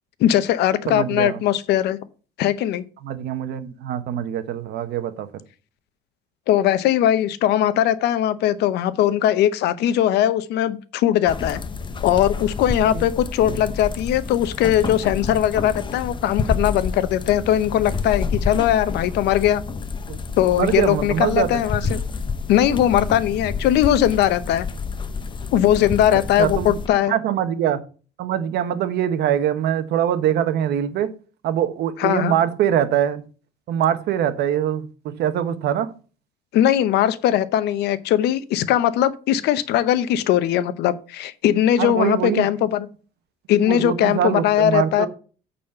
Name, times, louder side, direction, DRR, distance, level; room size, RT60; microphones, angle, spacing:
voice 1, 0.2-2.0 2.4-2.8 6.5-11.6 12.0-19.6 20.4-22.0 22.5-24.7 25.5-27.1 32.0-32.3 36.5-42.9 43.5-45.1, left 11 dB, 80° left, 0.8 m, -20 dB
voice 2, 0.9-1.4 3.0-5.3 12.9-13.0 20.1-20.2 20.6-21.6 26.1-26.8 27.1-27.8 28.2-31.1 31.4-33.2 33.7-34.9 35.2-35.9 41.8-42.5 43.6-45.1, right 10 dB, 75° right, 1.1 m, -23 dB
sound 1, 11.3-26.9, left 4 dB, 30° left, 0.9 m, -29 dB
8.8 x 4.3 x 6.5 m
cardioid pair, 110°, 17 cm